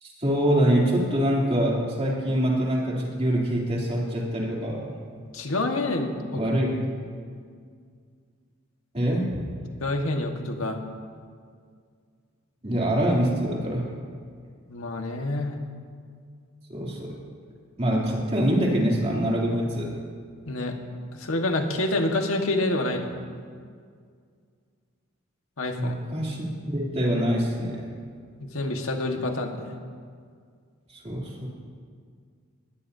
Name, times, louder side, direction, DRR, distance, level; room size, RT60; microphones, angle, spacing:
voice 1, 0.0-4.9 6.3-6.7 8.9-9.5 12.6-13.9 16.7-17.1 17.8-19.9 25.8-27.8 30.9-31.5, equal, 30° right, -4 dB, 3.1 m, -25 dB
voice 2, 5.3-6.4 9.8-10.8 14.7-15.5 20.4-20.8 21.1-23.1 25.6-26.0 28.4-29.7, left 2 dB, 80° left, 3 dB, 1.6 m, -27 dB
20.5 x 18.0 x 2.8 m, 2.1 s
head